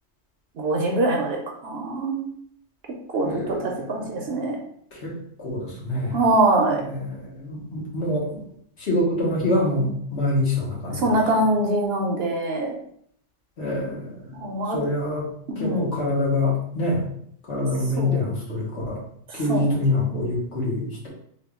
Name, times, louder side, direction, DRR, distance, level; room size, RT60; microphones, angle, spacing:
voice 1, 0.6-2.3 3.1-4.6 6.1-6.8 10.9-12.7 14.3-14.8 15.5-15.9 18.0-18.3 19.3-20.1, right 2 dB, 65° right, 0 dB, 0.7 m, -24 dB
voice 2, 3.2-4.1 4.9-6.2 6.7-8.3 8.8-11.1 13.6-14.3 14.7-15.3 15.6-17.0 17.5-19.0 19.3-21.1, left 1 dB, 60° left, -5 dB, 1.4 m, -26 dB
3.5 x 2.2 x 3.5 m, 0.66 s
omnidirectional pair, 1.3 m